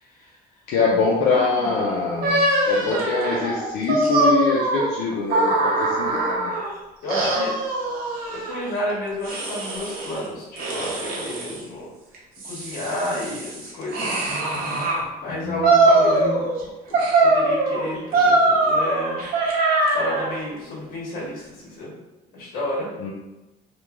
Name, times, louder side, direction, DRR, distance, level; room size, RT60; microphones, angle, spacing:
voice 1, 0.7-6.5 15.3-16.4 23.0-23.1, left 4 dB, 90° left, -4 dB, 0.4 m, -24 dB
voice 2, 1.3-1.9 2.9-3.1 7.0-7.5 8.3-11.9 12.4-14.1 15.1-16.5 16.9-19.2 19.9-21.9 22.3-22.9, left 1 dB, 60° left, -6 dB, 1.3 m, -31 dB
sound 1, 2.2-6.7 7.1-8.6 9.2-10.2 10.6-11.6 12.1-15.0 15.6-16.6 16.9-20.4, right 2 dB, 65° right, 0.8 m, -22 dB
3.0 x 2.2 x 2.3 m, 1.0 s
cardioid pair, 110°, 17 cm